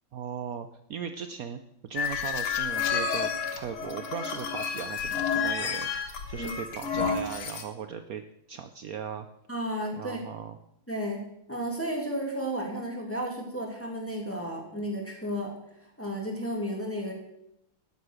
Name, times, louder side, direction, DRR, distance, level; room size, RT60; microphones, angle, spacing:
voice 1, 0.1-8.2 8.5-9.3 10.0-10.6, right 7 dB, 70° right, 9 dB, 0.8 m, -38 dB
sound 1, 2.0-7.6, left 6 dB, 80° left, 2.4 m, -30 dB
voice 2, 9.5-10.2 10.9-11.2 11.5-15.5 16.0-17.1, equal, 5° left, 0 dB, 2.4 m, -33 dB
12.5 x 9.6 x 6.4 m, 0.80 s
omnidirectional pair, 2.4 m